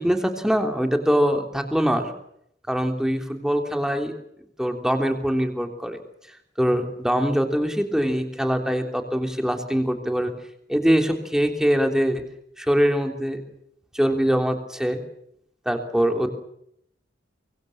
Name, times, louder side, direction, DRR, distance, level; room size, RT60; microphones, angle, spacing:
voice 1, 0.0-2.1 2.7-4.1 4.6-6.0 6.6-10.3 10.7-12.2 12.6-13.4 13.9-15.0 15.6-16.3, equal, 5° right, 5 dB, 3.3 m, -23 dB
24.5 x 24.0 x 7.3 m, 0.73 s
head